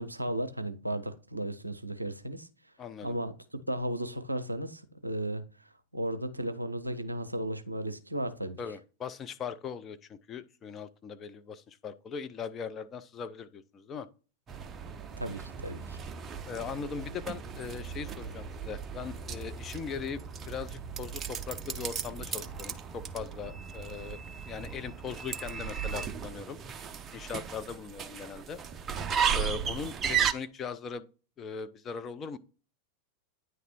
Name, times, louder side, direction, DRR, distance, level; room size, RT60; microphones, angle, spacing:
voice 1, 0.0-2.5 3.0-3.3 3.7-5.4 5.9-8.6 15.2-16.0, right 1 dB, 85° right, 0.5 m, -34 dB
voice 2, 2.8-3.1 8.6-14.1 16.4-20.2 20.5-24.2 24.5-26.6 27.1-28.6 29.3-31.1 31.4-32.4, left 6 dB, 25° left, 0.5 m, -39 dB
sound 1, 14.5-30.3, right 7 dB, 25° right, 0.5 m, -35 dB
9.2 x 3.3 x 4.2 m
figure-of-eight pair, 90°, 0 cm